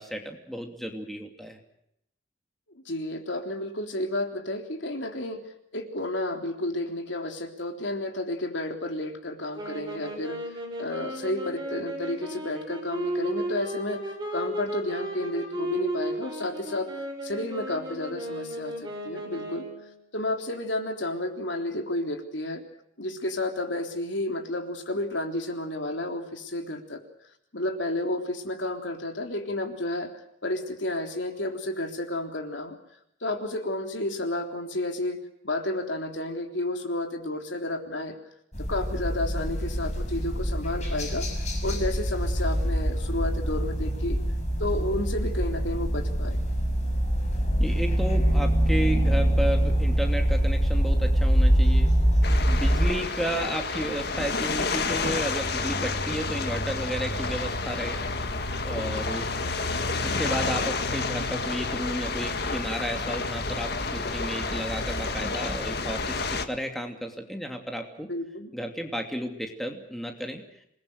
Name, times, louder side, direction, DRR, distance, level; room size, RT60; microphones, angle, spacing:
voice 1, 0.0-1.6 47.6-51.9 52.5-58.0 58.6-59.3 60.0-68.1 68.5-70.4, equal, ahead, 3 dB, 2.8 m, -33 dB
voice 2, 2.9-5.4 5.7-10.4 10.8-16.9 17.2-19.7 20.1-22.6 23.0-27.0 27.5-30.1 30.4-32.8 33.2-35.2 35.4-38.2 38.6-41.3 41.6-44.2 44.6-46.4 68.1-68.5, left 1 dB, 70° left, 5 dB, 3.6 m, -31 dB
sound 1, 9.5-19.9, right 1 dB, 20° right, 6.5 m, -34 dB
sound 2, 38.5-52.9, equal, 35° left, 6.1 m, -24 dB
sound 3, 52.2-66.5, left 3 dB, 55° left, 1.9 m, -30 dB
27.5 x 20.5 x 6.6 m, 0.76 s
head